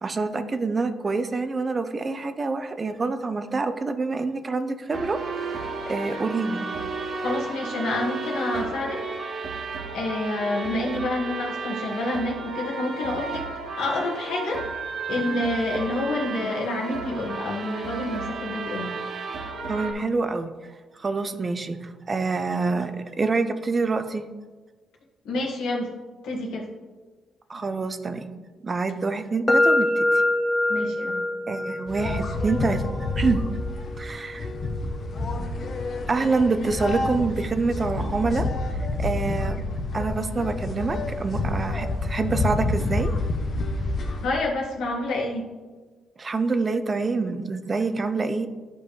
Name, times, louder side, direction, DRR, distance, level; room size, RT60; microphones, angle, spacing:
voice 1, 0.0-5.5 5.9-6.7 19.7-20.5 21.0-24.2 27.5-28.3 28.6-30.2 31.5-32.9 33.2-33.4 34.0-34.5 36.1-38.5 39.0-39.6 39.9-43.1 46.2-48.5, right 3 dB, 30° right, 9 dB, 0.6 m, -26 dB
sound 1, 4.9-19.9, right 4 dB, 55° right, 1.5 m, -33 dB
voice 2, 7.2-9.0 9.5-13.5 13.8-14.6 15.1-18.9 25.2-25.9 26.2-26.7 30.7-31.2 44.2-45.5, left 2 dB, 85° left, -2 dB, 1.7 m, -28 dB
sound 2, 29.5-37.3, left 1 dB, 20° left, 0.3 m, -27 dB
sound 3, 31.9-44.3, left 2 dB, 50° left, 0.9 m, -28 dB
11.0 x 5.3 x 3.2 m, 1.3 s
cardioid pair, 90°, 0 cm